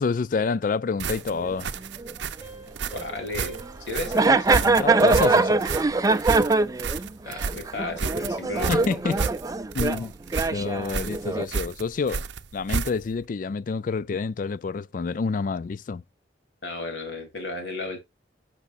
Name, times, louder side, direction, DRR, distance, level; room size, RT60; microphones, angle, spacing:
voice 1, 0.0-1.7 4.6-5.6 8.7-9.2 9.7-10.1 10.5-12.3 12.5-16.0, left 4 dB, 45° left, 0.4 m, -28 dB
sound 1, 1.0-13.2, right 5 dB, 75° right, 0.6 m, -31 dB
sound 2, 1.4-1.5 2.0-2.1 2.9-3.1 3.6-3.7 4.1-10.1 10.3-11.5, right 3 dB, 20° right, 0.4 m, -23 dB
sound 3, 2.4-5.7, right 3 dB, 30° left, 5.0 m, -48 dB
voice 2, 2.9-3.6 3.9-4.6 7.3-8.9 16.6-18.0, left 2 dB, 75° left, 3.3 m, -33 dB
12.0 x 6.1 x 2.6 m
head